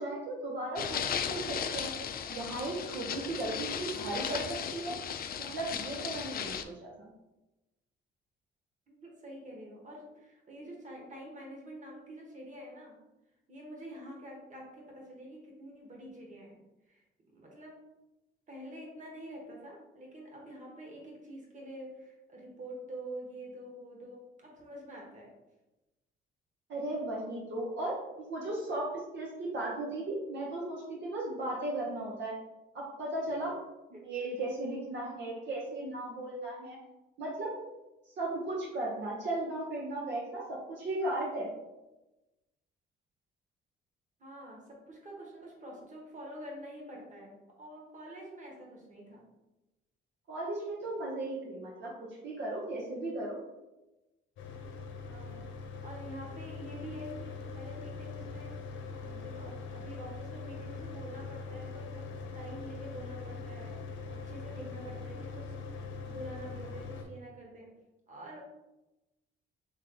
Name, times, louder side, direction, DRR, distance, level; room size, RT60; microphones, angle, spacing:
voice 1, 0.0-1.9 2.3-4.4 4.7-5.0 5.4-7.1 26.7-32.4 32.7-33.5 33.9-36.8 37.2-37.5 38.2-41.5 50.3-53.4, right 2 dB, 65° right, -4 dB, 0.9 m, -36 dB
sound 1, 0.8-6.6, left 8 dB, 50° left, 0.4 m, -36 dB
voice 2, 8.9-13.0 13.5-16.6 16.9-17.8 18.5-25.3 33.3-33.5 33.9-34.1 44.2-49.2 55.0-67.7 68.1-68.4, right 1 dB, 40° right, -1 dB, 1.5 m, -47 dB
Mechanical fan, 54.4-67.0, left 4 dB, 75° left, 0.7 m, -42 dB
3.6 x 3.2 x 3.8 m, 1.0 s
cardioid pair, 90°, 20 cm